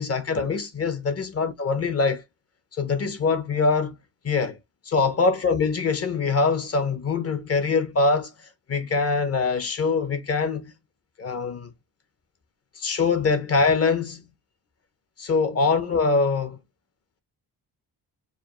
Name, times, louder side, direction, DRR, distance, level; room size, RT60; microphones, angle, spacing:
voice 1, 0.0-2.2 2.8-4.0 4.2-4.6 4.9-8.3 8.7-10.7 11.2-11.7 12.8-14.2 15.2-16.6, left 4 dB, 40° left, 0.8 m, -23 dB
4.9 x 2.4 x 3.0 m
wide cardioid pair, 165°, 39 cm